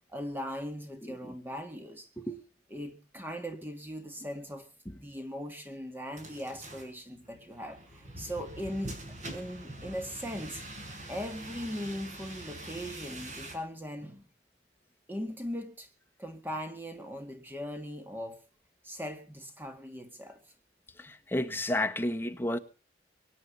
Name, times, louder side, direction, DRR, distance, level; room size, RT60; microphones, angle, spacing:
voice 1, 0.1-2.1 2.7-4.7 4.9-10.6 11.1-14.3 15.1-15.9 16.2-18.4 18.8-20.4, equal, 10° right, 1.9 m, -39 dB
voice 2, 1.0-1.3 2.2-2.4 21.0-22.6, left 1 dB, 10° left, 1.3 m, -32 dB
sound 1, 6.2-13.6, right 1 dB, 40° right, 5.8 m, -44 dB
24.0 x 9.3 x 5.5 m
head